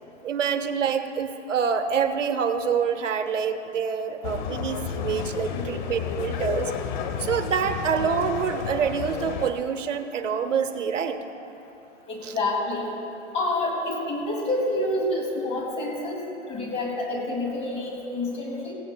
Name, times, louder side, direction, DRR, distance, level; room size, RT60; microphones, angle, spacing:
voice 1, 0.2-6.7 7.2-11.2 12.2-12.3, right 7 dB, 85° right, 8 dB, 0.9 m, -26 dB
sound 1, 4.2-9.5, left 7 dB, 40° left, 0.8 m, -31 dB
voice 2, 12.1-12.9 13.3-16.2 16.5-18.7, left 2 dB, 15° left, -2 dB, 2.4 m, -28 dB
17.0 x 16.5 x 2.3 m, 3.0 s
hypercardioid pair, 140°, 36 cm